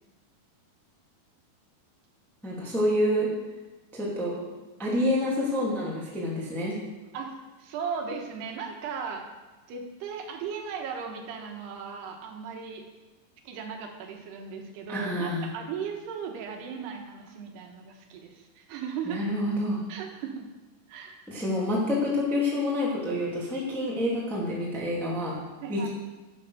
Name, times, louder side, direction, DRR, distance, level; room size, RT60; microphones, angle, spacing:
voice 1, 2.4-3.3 3.9-4.5 4.8-6.7 14.9-15.5 19.1-19.8 21.3-25.4 25.7-25.9, left 1 dB, ahead, -5 dB, 2.0 m, -28 dB
voice 2, 7.1-9.2 9.7-12.8 13.4-19.2 19.9-20.5 20.9-21.2 25.6-25.9, right 6 dB, 75° right, 3 dB, 3.2 m, -37 dB
11.5 x 9.0 x 6.6 m, 1.1 s
omnidirectional pair, 4.9 m